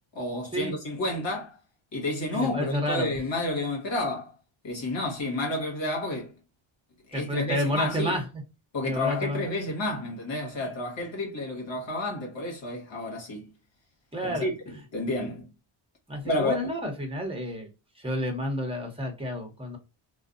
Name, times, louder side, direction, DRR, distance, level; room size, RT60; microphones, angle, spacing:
voice 1, 0.1-1.6 1.9-4.3 4.6-6.3 7.1-8.2 8.7-13.5 14.2-15.5 16.2-16.7, left 2 dB, 60° left, 1.3 m, -30 dB
voice 2, 2.3-3.1 7.1-8.2 8.8-9.4 14.1-14.5 16.1-17.7 18.0-19.8, equal, 10° right, 1.1 m, -30 dB
2.4 x 2.4 x 2.4 m
wide cardioid pair, 95°, 50 cm